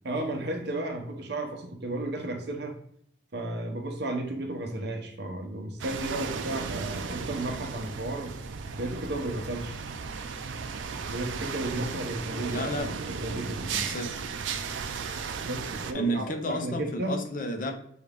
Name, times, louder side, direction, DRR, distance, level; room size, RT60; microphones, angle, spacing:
voice 1, 0.0-2.7 3.3-8.3 8.8-9.8 11.1-13.6 15.4-17.1, right 1 dB, 55° right, 3 dB, 0.8 m, -33 dB
sound 1, 5.8-15.9, right 5 dB, 75° right, 0.4 m, -35 dB
voice 2, 12.5-12.9 13.7-14.1 15.9-17.7, equal, 45° left, 5 dB, 0.6 m, -31 dB
6.7 x 2.4 x 3.3 m, 0.68 s
head